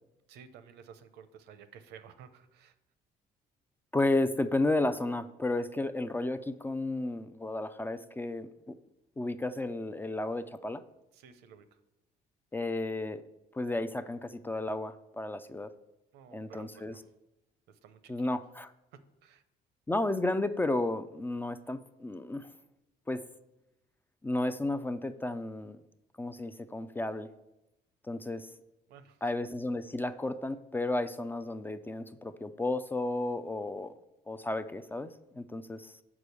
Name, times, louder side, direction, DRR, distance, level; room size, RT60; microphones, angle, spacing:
voice 1, 0.3-2.7 11.1-11.8 16.1-17.0 17.7-18.1 18.9-19.4 28.9-29.2, right 7 dB, 80° right, 11 dB, 0.7 m, -53 dB
voice 2, 3.9-8.7 9.2-10.8 12.5-13.2 13.5-15.7 16.3-16.9 18.1-18.7 19.9-22.5 23.1-23.2 24.2-25.8 26.2-27.3 28.0-28.5 29.2-33.9 34.3-35.9, left 2 dB, 10° left, 11 dB, 0.4 m, -33 dB
6.1 x 4.9 x 6.7 m, 0.92 s
cardioid pair, 110°, 17 cm